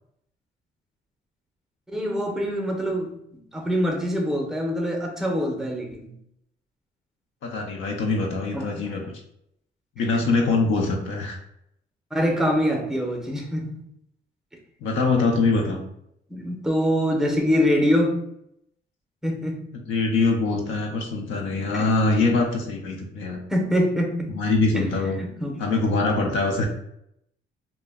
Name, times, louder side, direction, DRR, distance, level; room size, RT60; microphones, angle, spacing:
voice 1, 1.9-6.1 8.5-9.0 12.1-13.8 16.3-18.3 19.2-19.7 21.7-21.9 23.5-24.4 24.7-24.9 25.2-25.6, equal, 5° right, 2 dB, 0.6 m, -24 dB
voice 2, 7.4-9.0 10.0-11.4 14.8-15.8 19.9-23.4 24.3-25.2 25.6-26.6, left 3 dB, 80° left, 2 dB, 0.5 m, -23 dB
2.2 x 2.1 x 3.4 m, 0.76 s
cardioid pair, 90°, 20 cm